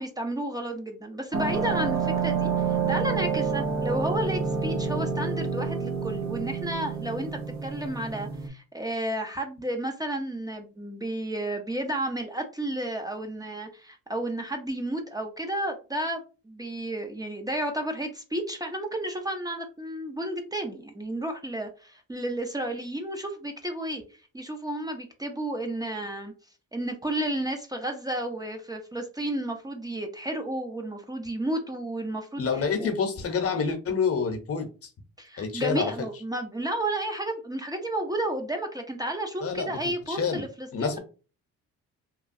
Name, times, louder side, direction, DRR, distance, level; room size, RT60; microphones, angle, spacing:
voice 1, 0.0-24.0 24.3-26.3 26.7-32.5 32.8-32.9 35.2-41.0, right 1 dB, 10° right, 3 dB, 0.5 m, -32 dB
sound 1, 1.3-8.5, right 5 dB, 65° right, 0.7 m, -28 dB
voice 2, 32.4-34.9 35.4-35.9 39.4-41.0, left 5 dB, 50° left, 6 dB, 0.8 m, -28 dB
2.9 x 2.2 x 2.6 m, 0.34 s
cardioid pair, 90°, 30 cm